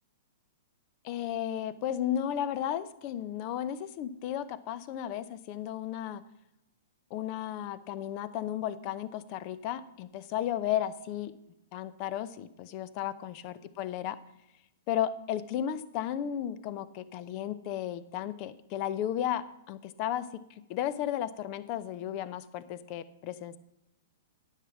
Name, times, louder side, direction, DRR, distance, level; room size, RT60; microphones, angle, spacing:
voice 1, 1.0-6.2 7.1-11.3 11.7-14.2 14.9-20.3 20.7-23.6, left 10 dB, 40° left, 15 dB, 0.8 m, -34 dB
10.0 x 7.6 x 6.0 m, 0.88 s
hypercardioid pair, 120°, 0 cm